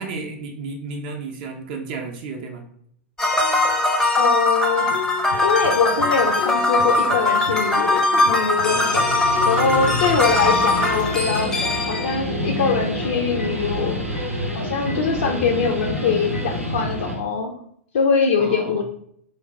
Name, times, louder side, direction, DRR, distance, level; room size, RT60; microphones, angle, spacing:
voice 1, 0.0-2.6 8.6-9.3 9.7-10.0 18.4-18.8, right 4 dB, 45° right, 3 dB, 0.5 m, -33 dB
sound 1, 3.2-12.2, left 2 dB, 10° left, 0.5 m, -21 dB
voice 2, 4.2-4.9 5.4-11.5 11.9-14.0 14.5-17.5 17.9-18.8, left 5 dB, 60° left, 2 dB, 0.4 m, -23 dB
sound 2, 4.8-16.6, left 1 dB, 85° left, 1.0 m, -35 dB
Guitar, 8.5-17.2, left 1 dB, 90° right, 0.6 m, -28 dB
3.2 x 2.2 x 3.9 m, 0.67 s
figure-of-eight pair, 100°, 7 cm